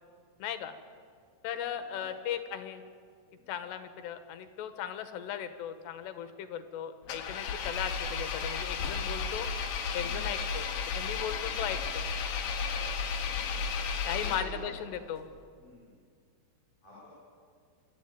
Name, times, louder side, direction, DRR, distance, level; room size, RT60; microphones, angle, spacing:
voice 1, 0.4-0.7 1.4-2.8 3.5-9.5 9.9-10.7 11.0-12.1 14.1-15.2, left 9 dB, 80° left, 9 dB, 3.4 m, -37 dB
voice 2, 1.7-2.0 3.3-3.5 10.0-10.3 14.2-14.7 15.6-15.9 16.8-17.1, left 3 dB, 35° left, -8 dB, 8.7 m, -51 dB
Engine, 7.1-14.8, left 5 dB, 65° left, 3.0 m, -33 dB
26.0 x 13.0 x 9.2 m, 2.1 s
omnidirectional pair, 4.9 m